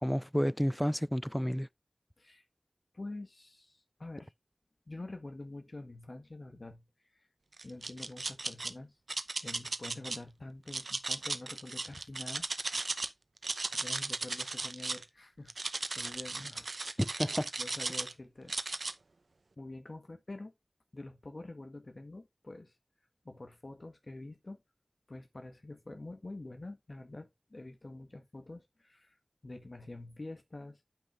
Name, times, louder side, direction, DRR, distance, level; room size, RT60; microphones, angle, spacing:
voice 1, 0.0-1.7 17.0-17.5, equal, 5° left, 0.4 m, -30 dB
voice 2, 2.9-4.3 4.9-6.8 7.1-7.3 7.6-9.0 9.4-12.4 13.8-17.0 17.6-18.5 19.6-20.5 20.9-22.7 23.2-24.6 25.1-29.2 29.4-30.8, left 2 dB, 60° left, 1.5 m, -46 dB
sound 1, 7.6-8.7 9.1-10.2 10.7-13.1 13.4-15.0 15.5-18.1 18.5-18.9, right 3 dB, 85° right, 0.7 m, -36 dB
9.0 x 5.4 x 3.4 m
wide cardioid pair, 55°, 0 cm